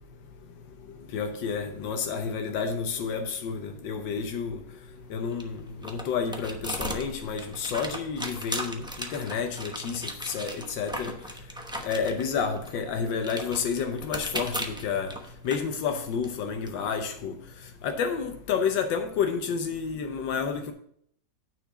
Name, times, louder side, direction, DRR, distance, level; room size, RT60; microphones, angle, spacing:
voice 1, 1.1-4.6 5.1-11.1 11.8-15.2 15.4-17.4 17.8-20.7, left 6 dB, 85° left, 1.5 m, -30 dB
sound 1, 5.0-16.7, equal, 5° right, 0.3 m, -38 dB
9.2 x 4.6 x 6.6 m
omnidirectional pair, 1.9 m